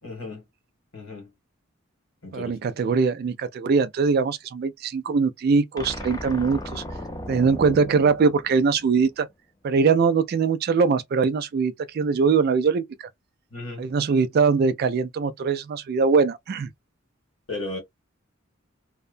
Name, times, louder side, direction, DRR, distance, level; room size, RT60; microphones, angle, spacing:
voice 1, 0.0-0.4 0.9-1.3 2.2-2.5 13.5-13.9 17.5-17.8, left 2 dB, 85° left, 1.6 m, -34 dB
voice 2, 2.3-6.8 7.3-9.3 9.6-12.8 13.8-16.7, right 5 dB, 50° right, 0.3 m, -22 dB
sound 1, 5.8-9.1, left 1 dB, 20° left, 0.5 m, -36 dB
2.8 x 2.1 x 2.4 m
head